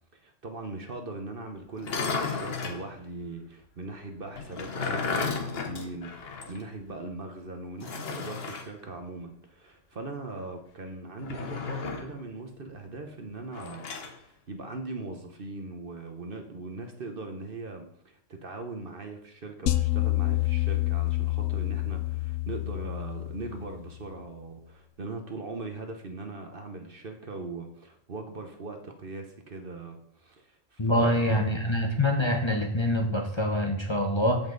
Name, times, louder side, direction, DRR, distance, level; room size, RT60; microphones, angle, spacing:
voice 1, 0.1-31.6, right 3 dB, 50° right, 5 dB, 1.2 m, -40 dB
sound 1, 1.8-2.8 4.4-6.6 6.9-7.0 7.8-8.7 11.2-12.2 13.5-14.2, left 4 dB, 55° left, 1.2 m, -33 dB
sound 2, 19.7-24.0, left 18 dB, 75° left, 1.0 m, -28 dB
voice 2, 30.8-34.4, left 1 dB, 25° left, 2 dB, 1.0 m, -25 dB
14.0 x 5.5 x 3.9 m, 0.66 s
omnidirectional pair, 1.3 m